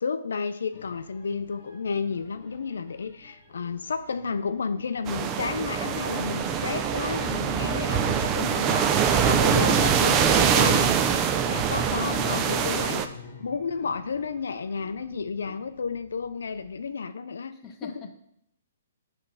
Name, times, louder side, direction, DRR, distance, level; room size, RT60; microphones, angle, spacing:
voice 1, 0.0-13.0 13.4-17.6 17.8-18.1, left 5 dB, 85° left, 11 dB, 0.4 m, -32 dB
sound 1, 0.7-16.9, left 4 dB, 45° left, 1.6 m, -49 dB
sound 2, 5.1-13.1, right 7 dB, 20° right, 0.4 m, -23 dB
voice 2, 12.1-12.7 17.6-18.2, left 5 dB, 20° left, 4 dB, 0.7 m, -42 dB
8.7 x 3.2 x 5.5 m, 0.74 s
hypercardioid pair, 155°, 0 cm